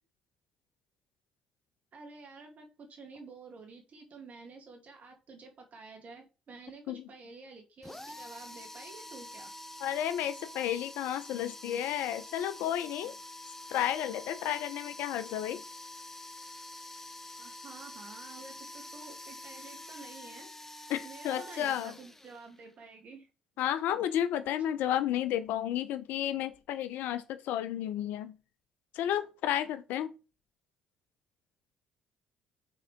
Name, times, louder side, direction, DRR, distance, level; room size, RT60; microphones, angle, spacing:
voice 1, 1.9-9.5 17.4-20.7 21.0-23.3, right 4 dB, 55° right, 2.4 m, -50 dB
sound 1, 7.8-22.7, left 1 dB, 10° left, 1.0 m, -47 dB
voice 2, 9.8-13.2 13.7-15.6 20.9-21.9 23.6-28.4 28.9-30.1, left 11 dB, 75° left, 0.7 m, -32 dB
6.7 x 3.9 x 3.6 m
supercardioid pair, 65°, 3 cm